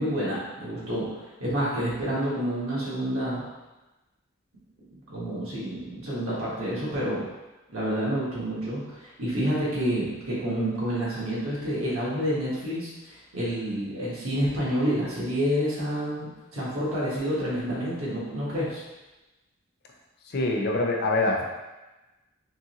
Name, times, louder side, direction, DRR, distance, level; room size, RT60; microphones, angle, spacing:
voice 1, 0.0-3.4 5.1-7.2 7.7-18.8, equal, 85° right, -7 dB, 1.5 m, -29 dB
voice 2, 20.3-21.4, left 2 dB, 50° left, 0 dB, 0.6 m, -24 dB
3.7 x 3.1 x 3.0 m, 1.1 s
head